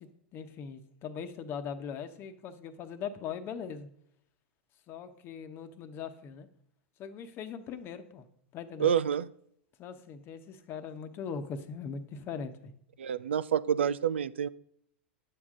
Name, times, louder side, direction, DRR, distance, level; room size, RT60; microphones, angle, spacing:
voice 1, 0.0-3.9 4.9-6.5 7.0-8.2 8.5-8.9 9.8-12.7, left 6 dB, 40° left, 9 dB, 1.0 m, -40 dB
voice 2, 8.8-9.3 13.0-14.5, right 8 dB, 80° right, 16 dB, 0.3 m, -28 dB
9.4 x 7.4 x 3.7 m, 0.71 s
hypercardioid pair, 95°, 6 cm